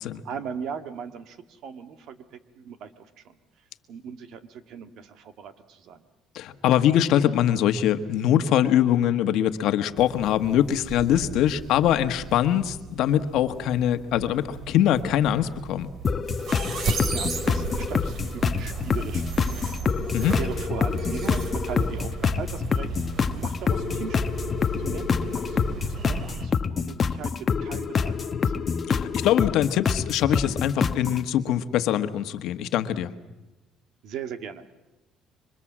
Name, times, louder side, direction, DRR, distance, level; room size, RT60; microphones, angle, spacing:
voice 1, 0.0-3.3 3.9-6.0 16.9-19.9 20.3-24.4 24.8-28.5 34.0-34.6, right 7 dB, 65° right, 9 dB, 1.9 m, -39 dB
voice 2, 6.3-15.9 20.1-20.4 28.9-33.1, left 11 dB, 70° left, 9 dB, 1.4 m, -23 dB
sound 1, 10.0-26.5, right 4 dB, 50° right, 3.0 m, -35 dB
sound 2, 16.0-31.2, left 6 dB, 35° left, 1.0 m, -26 dB
26.5 x 24.0 x 7.5 m, 1.0 s
cardioid pair, 120°, 0 cm